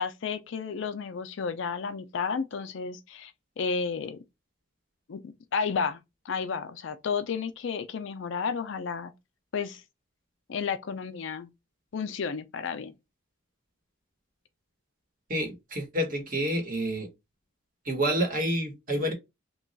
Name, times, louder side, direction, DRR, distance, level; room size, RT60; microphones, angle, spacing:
voice 1, 0.0-3.3 3.6-4.2 5.1-5.2 5.5-6.0 6.2-9.1 9.5-9.8 10.5-11.5 11.9-12.9, left 5 dB, 60° left, 0.4 m, -32 dB
voice 2, 15.3-17.1 17.9-19.1, right 1 dB, 40° right, 1.1 m, -28 dB
3.0 x 2.3 x 3.9 m
head